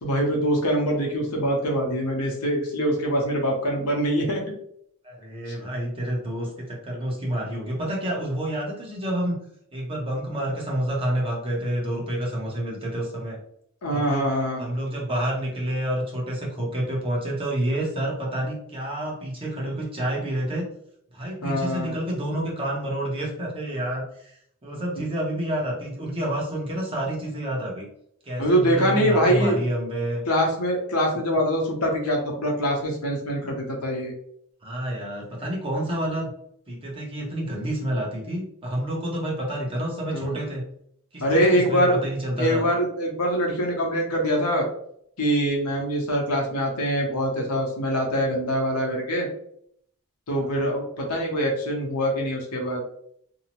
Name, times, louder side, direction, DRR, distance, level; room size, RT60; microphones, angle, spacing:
voice 1, 0.0-4.4 5.5-5.6 13.8-14.6 21.4-21.9 25.0-25.1 28.4-29.6 30.3-34.1 40.1-40.4 41.2-42.0 42.4-44.6 45.2-49.3 50.3-52.8, equal, 80° left, -1 dB, 0.8 m, -24 dB
voice 2, 5.0-9.4 9.7-13.4 13.9-14.3 14.6-20.7 21.1-24.3 24.6-27.9 28.2-30.2 34.6-36.3 36.7-40.6 41.1-42.7 50.3-50.6, right 1 dB, 25° right, -3 dB, 0.8 m, -29 dB
2.7 x 2.0 x 2.9 m, 0.68 s
head